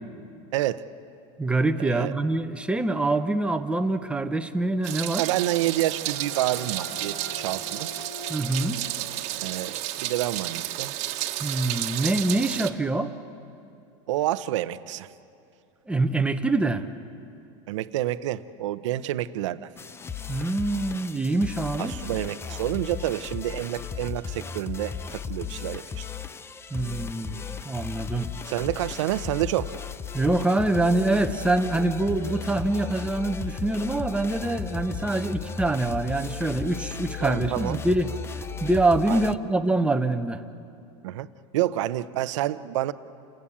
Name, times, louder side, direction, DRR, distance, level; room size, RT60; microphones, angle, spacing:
voice 1, 0.5-0.8 1.8-2.1 5.2-7.9 9.4-10.9 14.1-15.1 17.7-19.7 21.8-26.0 28.5-29.7 37.2-37.8 39.1-39.2 41.0-41.3 41.5-42.9, right 14 dB, 80° right, 13 dB, 1.0 m, -28 dB
voice 2, 1.4-5.3 8.3-8.8 11.4-13.1 15.9-16.9 20.3-22.0 26.7-28.3 30.1-38.1 38.6-40.4, right 2 dB, 5° right, 7 dB, 1.0 m, -25 dB
Meow, 4.8-12.7, right 14 dB, 50° right, 1.5 m, -32 dB
sound 1, 5.3-10.8, left 2 dB, 60° left, 3.3 m, -46 dB
sound 2, 19.8-39.4, left 7 dB, 15° left, 0.6 m, -36 dB
30.0 x 18.5 x 8.7 m, 2.5 s
supercardioid pair, 130°, 16 cm